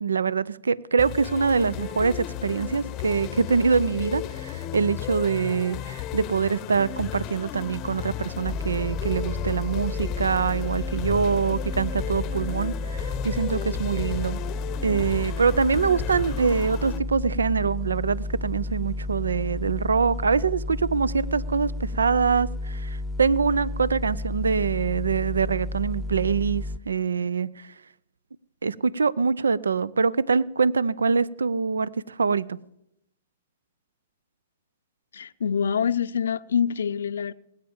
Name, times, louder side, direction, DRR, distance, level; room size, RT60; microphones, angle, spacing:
voice 1, 0.0-14.4 14.8-27.7 28.6-32.6, right 5 dB, 85° right, 0.4 m, -24 dB
sound 1, 1.0-17.0, left 12 dB, 35° left, 0.7 m, -35 dB
sound 2, 8.4-26.8, left 2 dB, ahead, 0.7 m, -32 dB
voice 2, 35.1-37.3, left 7 dB, 75° left, 0.5 m, -25 dB
19.0 x 8.9 x 7.1 m
hypercardioid pair, 115°, 0 cm